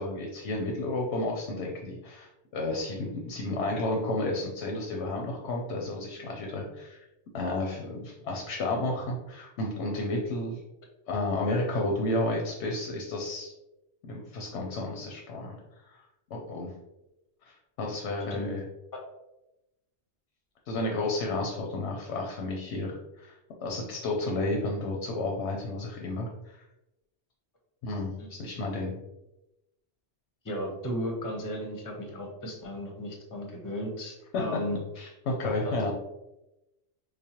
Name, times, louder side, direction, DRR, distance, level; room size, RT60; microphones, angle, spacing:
voice 1, 0.0-7.0 7.3-10.6 11.1-13.5 14.1-15.6 15.9-16.0 16.3-16.7 17.5-18.7 20.7-23.3 23.6-26.6 27.8-28.9 34.3-34.6 35.0-35.9, left 2 dB, 90° left, 0 dB, 0.9 m, -32 dB
voice 2, 30.4-34.8 35.6-35.9, equal, 20° left, 1 dB, 0.6 m, -35 dB
4.8 x 2.1 x 2.8 m, 0.94 s
omnidirectional pair, 1.1 m